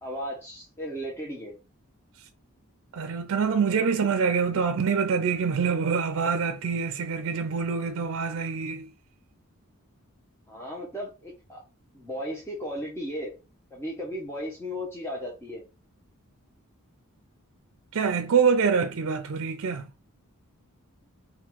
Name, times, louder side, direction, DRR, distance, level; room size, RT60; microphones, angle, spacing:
voice 1, 0.0-1.6 10.5-11.6 11.9-13.3 13.7-15.6, equal, 10° left, 0.7 m, -35 dB
voice 2, 2.9-8.9 17.9-19.9, right 6 dB, 60° right, 0.4 m, -25 dB
3.8 x 2.3 x 4.4 m
head